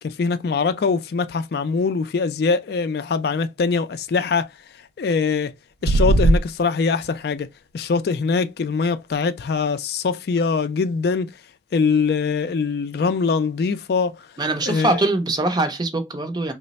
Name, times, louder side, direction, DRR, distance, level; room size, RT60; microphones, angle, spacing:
voice 1, 0.0-4.5 5.0-5.5 5.8-7.5 7.7-11.3 11.7-14.3 14.7-14.9, left 4 dB, 60° left, 0.3 m, -22 dB
sound 1, 5.8-6.4, right 2 dB, 75° right, 0.4 m, -16 dB
voice 2, 14.4-16.5, right 2 dB, 25° right, 0.5 m, -22 dB
3.2 x 2.0 x 4.0 m
head